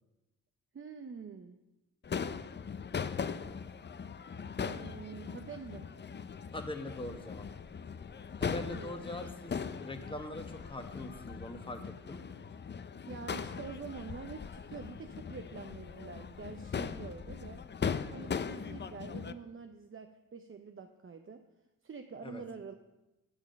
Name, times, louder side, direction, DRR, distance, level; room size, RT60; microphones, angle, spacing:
voice 1, 0.7-1.6 4.5-5.9 8.7-9.0 13.1-17.6 18.1-21.4 21.8-22.7, right 5 dB, 40° right, 6 dB, 0.7 m, -46 dB
Crowd / Fireworks, 2.0-19.3, left 6 dB, 35° left, 0.5 m, -40 dB
voice 2, 6.5-7.5 8.4-12.2 22.2-22.4, left 1 dB, 15° left, 5 dB, 1.3 m, -42 dB
8.9 x 7.1 x 5.3 m, 0.99 s
cardioid pair, 55°, 32 cm